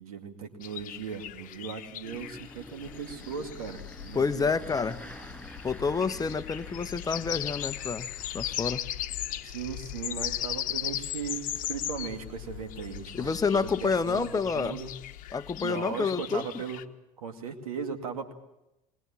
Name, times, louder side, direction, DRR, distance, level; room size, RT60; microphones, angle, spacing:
voice 1, 0.0-4.5 9.4-15.0 15.6-16.8 17.2-18.3, right 6 dB, 80° right, 6 dB, 2.3 m, -38 dB
sound 1, 0.6-12.2 12.7-16.8, left 12 dB, 50° left, 1.1 m, -38 dB
Engine starting, 2.0-14.5, left 1 dB, 5° left, 7.2 m, -50 dB
sound 2, 2.8-15.6, left 11 dB, 85° left, 1.0 m, -46 dB
voice 2, 4.1-5.1 5.6-8.1 8.3-8.8 13.1-14.8 15.3-16.4, left 5 dB, 20° left, 12 dB, 0.9 m, -28 dB
21.0 x 20.0 x 7.2 m, 0.91 s
hypercardioid pair, 75°, 18 cm